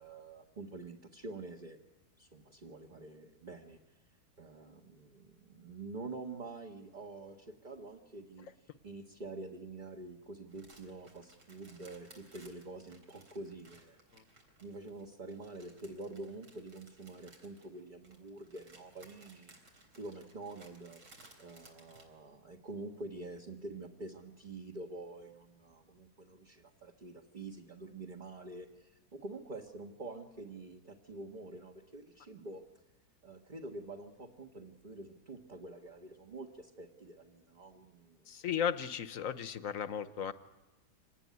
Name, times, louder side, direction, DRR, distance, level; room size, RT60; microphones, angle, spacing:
voice 1, 0.0-1.8 2.2-3.8 4.4-14.0 14.6-19.5 20.0-21.0 21.4-32.6 33.2-38.3, right 2 dB, 30° right, 1 dB, 1.5 m, -47 dB
sound 1, 10.5-22.0, right 2 dB, 80° right, 4.5 m, -61 dB
voice 2, 38.3-40.3, left 8 dB, 55° left, 12 dB, 1.3 m, -35 dB
26.0 x 19.5 x 9.5 m, 1.0 s
omnidirectional pair, 1.8 m